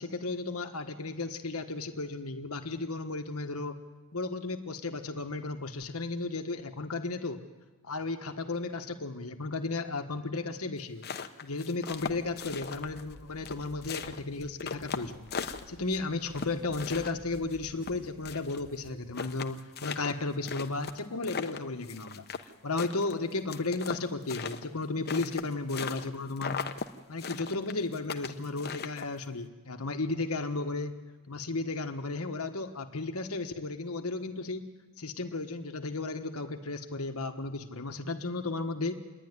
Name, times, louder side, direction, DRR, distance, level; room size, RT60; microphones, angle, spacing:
voice 1, 0.0-3.8 4.1-7.4 7.8-11.1 11.4-15.2 15.7-22.2 22.6-26.6 27.1-30.9 31.3-34.7 35.0-38.9, left 3 dB, 75° left, 6 dB, 1.4 m, -34 dB
sound 1, 10.8-13.1 13.4-16.0 16.3-18.6 18.9-19.0 19.1-22.5 22.8-26.1 26.4-26.9 27.2-29.2, left 5 dB, 45° left, 0.9 m, -38 dB
sound 2, 12.3-19.5, left 1 dB, 40° right, 4.0 m, -54 dB
28.0 x 11.0 x 9.6 m, 1.3 s
head